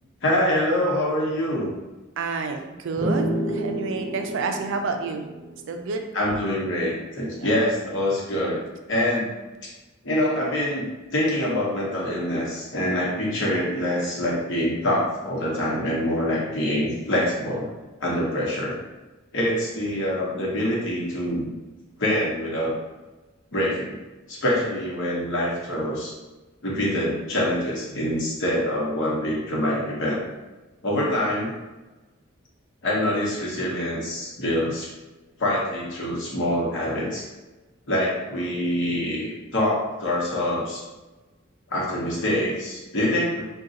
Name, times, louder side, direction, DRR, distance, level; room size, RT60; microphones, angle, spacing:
voice 1, 0.2-1.7 6.1-8.6 8.9-9.3 9.6-9.7 10.0-17.7 18.0-18.7 19.3-21.5 22.0-22.7 23.5-24.0 24.3-26.1 26.6-30.2 30.8-31.5 32.8-34.9 35.4-37.3 37.9-39.3 39.5-40.8 41.7-43.4, left 1 dB, 65° left, -4 dB, 0.9 m, -25 dB
voice 2, 2.2-5.3 5.7-6.1, right 4 dB, 65° right, 4 dB, 0.4 m, -29 dB
sound 1, 3.0-6.5, right 1 dB, 25° right, 0.8 m, -30 dB
2.5 x 2.2 x 3.9 m, 1.2 s
head